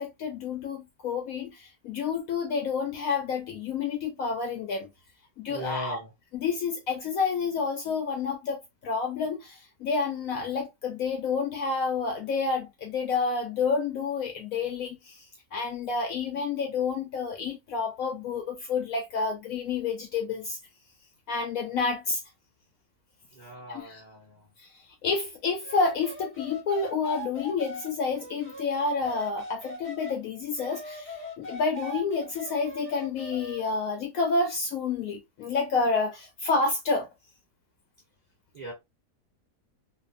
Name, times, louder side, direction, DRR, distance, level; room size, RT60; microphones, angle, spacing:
voice 1, 0.0-4.9 5.4-6.0 6.3-15.3 15.5-20.6 21.3-22.2 23.7-24.0 24.6-24.7 25.0-37.1, left 4 dB, 70° left, 0.9 m, -29 dB
voice 2, 5.5-6.1 23.3-24.5 38.5-38.7, left 1 dB, 30° right, 1.1 m, -39 dB
sound 1, 25.6-30.2 30.6-33.8, left 1 dB, 10° left, 0.6 m, -40 dB
2.7 x 2.3 x 2.4 m
omnidirectional pair, 1.7 m